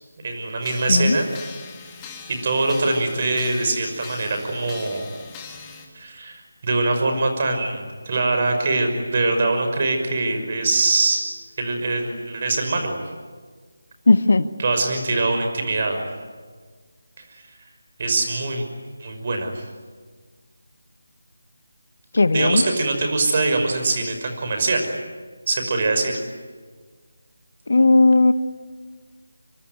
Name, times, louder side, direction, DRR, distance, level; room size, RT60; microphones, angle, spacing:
voice 1, 0.2-1.3 2.3-5.1 5.9-11.2 11.6-13.0 14.6-16.0 17.3-17.4 18.0-18.6 19.0-19.6 22.3-24.9 25.5-26.1, right 2 dB, 40° right, 5 dB, 5.9 m, -23 dB
sound 1, 0.6-5.9, left 5 dB, 15° left, 2.8 m, -41 dB
voice 2, 14.1-14.5 22.1-22.6 27.7-28.3, left 3 dB, 60° left, 13 dB, 1.2 m, -16 dB
25.0 x 24.5 x 9.5 m, 1.5 s
figure-of-eight pair, 160°, 0 cm